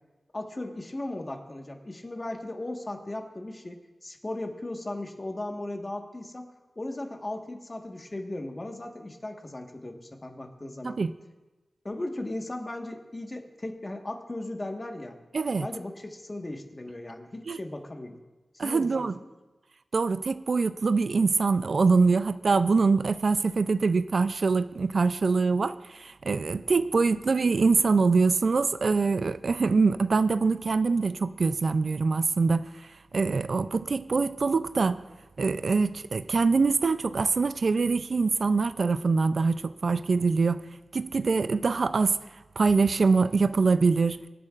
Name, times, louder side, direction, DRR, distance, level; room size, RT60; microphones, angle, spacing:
voice 1, 0.3-6.5 6.7-11.0 11.8-15.2 15.6-18.2 18.5-19.1, left 1 dB, 30° left, 3 dB, 1.5 m, -37 dB
voice 2, 15.3-15.7 17.5-17.6 18.6-19.1 19.9-32.7 33.1-35.0 35.4-40.6 40.9-42.2 42.6-44.2, right 4 dB, 65° right, 12 dB, 0.4 m, -24 dB
23.5 x 8.5 x 2.5 m, 1.2 s
cardioid pair, 60°, 0 cm